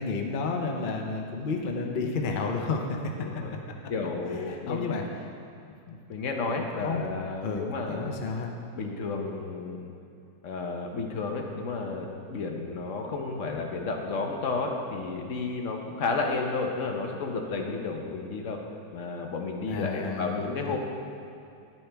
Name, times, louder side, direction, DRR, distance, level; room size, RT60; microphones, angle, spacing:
voice 1, 0.0-3.0 4.5-5.0 5.6-6.0 6.5-7.0 7.4-8.5 19.7-20.7, left 4 dB, 75° left, 2 dB, 0.4 m, -31 dB
voice 2, 3.2-3.6 3.9-4.8 6.1-8.2 8.7-9.9 10.4-18.6 18.9-20.8, left 3 dB, 55° left, 2 dB, 1.0 m, -32 dB
10.5 x 8.7 x 3.4 m, 2.6 s
omnidirectional pair, 1.9 m